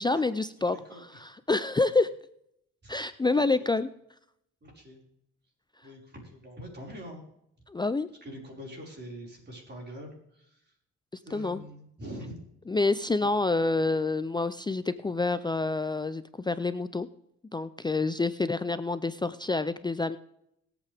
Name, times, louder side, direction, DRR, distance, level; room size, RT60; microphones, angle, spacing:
voice 1, 0.0-2.1 2.9-3.9 7.7-8.1 11.3-11.6 12.7-17.1 17.5-20.2, left 3 dB, 15° left, 13 dB, 0.5 m, -28 dB
voice 2, 0.6-1.2 2.8-3.0 3.5-3.6 4.6-5.0 5.8-7.2 8.2-10.7 11.2-12.4 13.2-13.3, equal, 35° right, 0 dB, 5.1 m, -44 dB
21.0 x 8.4 x 3.5 m, 0.76 s
cardioid pair, 90°, 30 cm